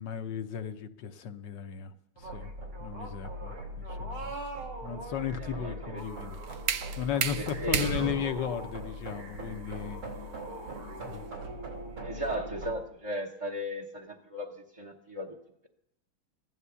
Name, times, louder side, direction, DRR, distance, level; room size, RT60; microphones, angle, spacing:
voice 1, 0.0-1.9 2.2-2.5 2.8-4.4 4.8-6.4 7.0-10.0 11.1-11.2, left 8 dB, 65° left, 8 dB, 1.3 m, -35 dB
sound 1, 2.2-12.7, right 1 dB, 80° right, 4.2 m, -40 dB
voice 2, 5.4-6.0 7.3-8.0 12.0-15.4, equal, 25° right, -2 dB, 0.7 m, -36 dB
sound 2, 6.0-11.8, right 8 dB, 60° right, 1.0 m, -35 dB
15.0 x 11.0 x 6.9 m, 0.83 s
omnidirectional pair, 2.4 m